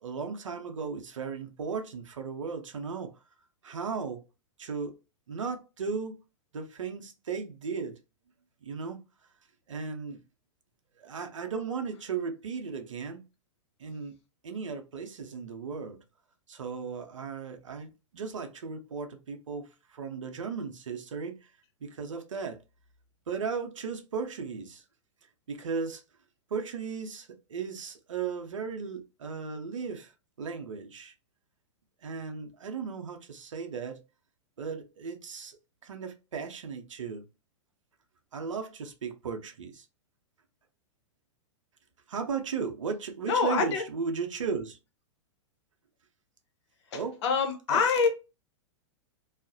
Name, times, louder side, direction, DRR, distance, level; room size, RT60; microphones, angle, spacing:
voice 1, 0.0-3.1 3.6-4.2 4.6-4.9 5.3-6.1 6.5-8.0 8.6-9.0 9.7-10.2 11.0-13.2 13.8-14.1 14.4-16.0 16.5-21.4 21.8-22.6 23.3-24.8 25.5-26.0 26.5-30.1 30.4-31.1 32.0-34.0 34.6-35.6 35.8-37.2 38.3-39.9 42.1-44.8 46.9-47.2 47.7-47.8, right 5 dB, 85° right, 0.6 m, -36 dB
voice 2, 43.2-43.8 46.9-48.1, left 5 dB, 65° left, 0.7 m, -26 dB
2.3 x 2.0 x 2.5 m
hypercardioid pair, 115°, 16 cm